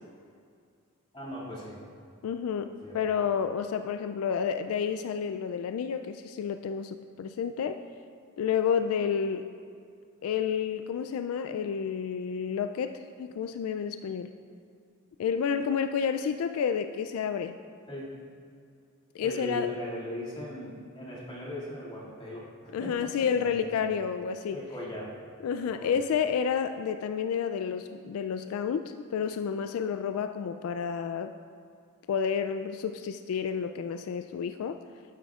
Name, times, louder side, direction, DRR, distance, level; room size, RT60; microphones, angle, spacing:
voice 1, 1.1-1.8 2.8-3.0 17.9-18.2 19.2-24.0 24.5-25.1 25.6-26.0, left 1 dB, 25° left, -7 dB, 2.2 m, -39 dB
voice 2, 2.2-7.8 8.4-9.5 10.2-14.3 15.2-17.6 19.1-19.7 22.7-24.6 25.4-31.3 32.1-34.8, left 7 dB, 85° left, 10 dB, 0.3 m, -30 dB
12.0 x 9.1 x 2.4 m, 2.3 s
head